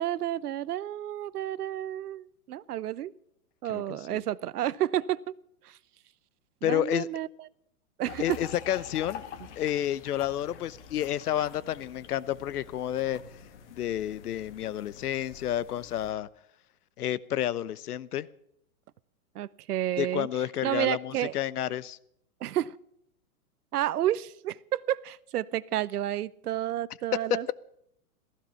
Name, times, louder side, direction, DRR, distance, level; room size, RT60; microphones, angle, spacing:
voice 1, 0.0-3.1 3.6-5.3 5.6-5.8 6.6-7.3 8.0-8.4 19.3-20.3 20.6-21.3 22.4-22.8 23.7-27.5, right 12 dB, 90° right, 21 dB, 0.8 m, -30 dB
voice 2, 3.7-4.2 6.6-7.1 8.2-9.2 9.6-13.2 13.7-16.3 17.0-18.3 20.0-22.0, left 11 dB, 80° left, 20 dB, 0.9 m, -30 dB
sound 1, 8.0-16.1, left 7 dB, 50° left, 1.8 m, -46 dB
15.5 x 15.0 x 5.7 m, 0.73 s
hypercardioid pair, 170°, 45 cm